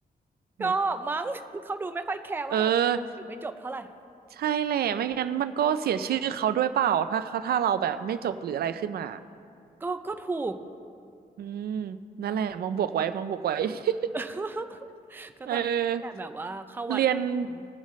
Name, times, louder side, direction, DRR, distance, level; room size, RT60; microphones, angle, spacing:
voice 1, 0.6-2.7 3.3-3.9 9.8-10.6 14.1-14.8 15.1-15.7 16.0-17.0 17.6-17.7, right 3 dB, 15° right, 8 dB, 0.4 m, -32 dB
voice 2, 2.5-3.0 4.3-9.2 11.4-14.1 15.4-16.0 16.9-17.5, right 9 dB, 85° right, 12 dB, 0.5 m, -27 dB
21.5 x 7.4 x 3.2 m, 2.5 s
wide cardioid pair, 155°, 16 cm